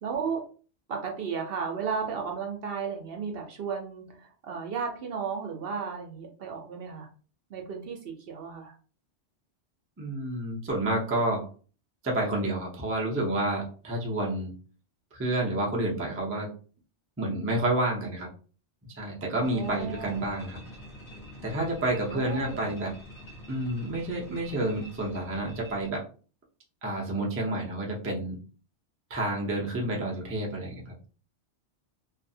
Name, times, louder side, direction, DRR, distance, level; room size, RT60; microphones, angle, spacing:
voice 1, 0.0-0.4 0.9-7.1 7.5-8.7 19.4-20.2 22.1-22.7, right 6 dB, 60° right, 2 dB, 0.8 m, -34 dB
voice 2, 10.0-11.5 12.0-14.5 15.1-16.5 17.2-18.3 18.9-20.6 21.4-23.0 23.5-26.1 26.8-28.4 29.1-31.1, right 1 dB, 20° right, -2 dB, 0.4 m, -29 dB
sound 1, 19.4-25.9, equal, 50° left, 1.0 m, -46 dB
2.5 x 2.4 x 2.6 m, 0.38 s
omnidirectional pair, 1.2 m